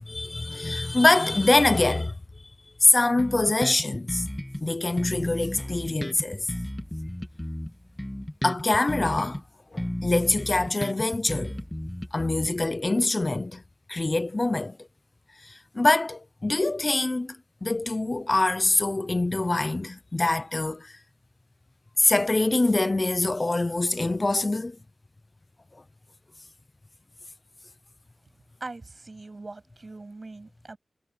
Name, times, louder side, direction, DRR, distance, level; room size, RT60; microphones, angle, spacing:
voice 1, 0.1-2.2 2.8-4.2 4.6-6.5 8.4-9.4 9.7-11.5 12.1-13.6 13.9-14.8 15.4-21.0 22.0-24.8, left 2 dB, 30° left, 0.7 m, -24 dB
Bass guitar, 3.2-4.6 5.0-9.4 9.8-12.8, left 1 dB, 10° left, 1.7 m, -33 dB
voice 2, 28.6-30.8, right 3 dB, 40° right, 8.0 m, -41 dB
wide cardioid pair, 75°, 0 cm